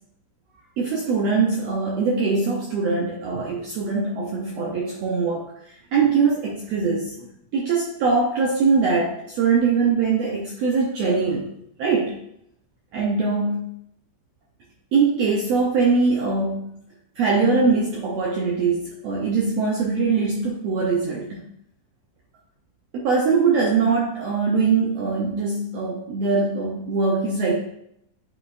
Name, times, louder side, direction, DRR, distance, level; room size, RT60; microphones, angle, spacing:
voice 1, 0.8-11.5 11.8-12.2 12.9-13.7 14.9-16.7 17.2-21.4 22.9-27.5, right 4 dB, 80° right, -2 dB, 1.4 m, -22 dB
10.0 x 4.2 x 2.6 m, 0.75 s
omnidirectional pair, 4.0 m